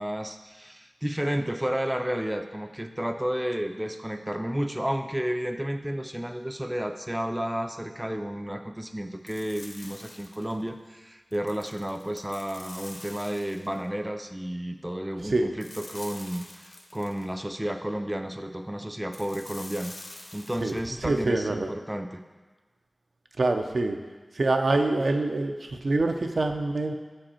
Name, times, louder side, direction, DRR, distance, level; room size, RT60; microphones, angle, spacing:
voice 1, 0.0-20.0 20.3-22.2, equal, 10° right, 7 dB, 0.3 m, -32 dB
sound 1, 9.3-10.6 11.3-13.8 15.6-17.3 19.1-20.8, left 1 dB, 50° left, 0.7 m, -46 dB
voice 2, 21.0-21.7 23.4-24.0 24.3-26.9, right 2 dB, 75° right, 5 dB, 0.5 m, -25 dB
6.8 x 5.2 x 4.3 m, 1.3 s
wide cardioid pair, 80°, 0 cm